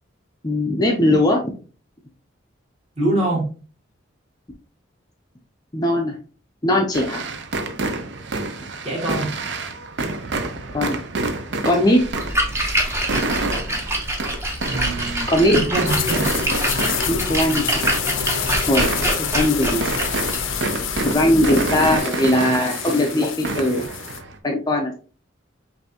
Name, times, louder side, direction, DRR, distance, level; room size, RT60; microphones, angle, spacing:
voice 1, 0.4-1.4 5.7-6.2 6.6-7.2 10.7-11.0 11.6-12.1 15.3-15.7 17.1-17.6 18.7-18.9 19.2-19.8 21.0-23.9 24.4-24.9, left 1 dB, 20° left, 2 dB, 0.5 m, -19 dB
voice 2, 3.0-3.4 8.8-9.3 14.7-15.3 15.5-16.2, right 2 dB, 30° right, -3 dB, 1.8 m, -24 dB
sound 1, 6.9-24.4, right 3 dB, 60° right, 0.6 m, -28 dB
Splash splatter, 12.0-22.0, right 1 dB, 15° right, 0.8 m, -26 dB
sound 2, 15.8-24.2, left 8 dB, 80° left, 0.5 m, -28 dB
5.5 x 2.7 x 2.8 m, 0.38 s
head